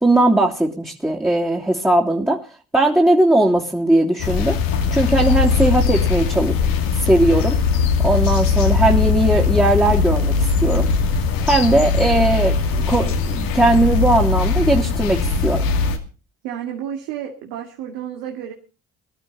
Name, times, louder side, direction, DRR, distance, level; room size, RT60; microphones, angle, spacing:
voice 1, 0.0-2.4 2.7-4.6 4.9-6.6 7.0-7.6 8.0-10.9 11.4-12.6 12.9-15.6, right 1 dB, 5° right, -3 dB, 3.1 m, -18 dB
sound 1, 4.2-16.0, left 5 dB, 80° left, 2.6 m, -20 dB
voice 2, 16.4-18.5, right 9 dB, 85° right, 1 dB, 2.4 m, -31 dB
21.0 x 12.5 x 4.0 m, 0.35 s
supercardioid pair, 60°, 33 cm